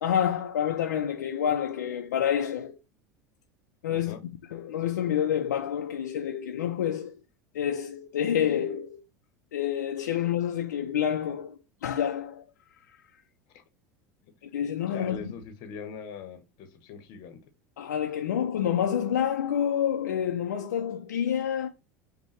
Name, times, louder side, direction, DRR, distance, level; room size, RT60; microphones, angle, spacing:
voice 1, 0.0-2.8 3.8-4.2 4.5-7.1 7.5-9.0 9.5-12.4 14.4-15.2 17.8-21.7, left 9 dB, 75° left, 0.5 m, -28 dB
voice 2, 3.9-4.2 13.5-13.6 14.2-14.3 14.9-17.4, left 6 dB, 55° left, 0.9 m, -42 dB
5.4 x 2.2 x 3.2 m
hypercardioid pair, 80°, 9 cm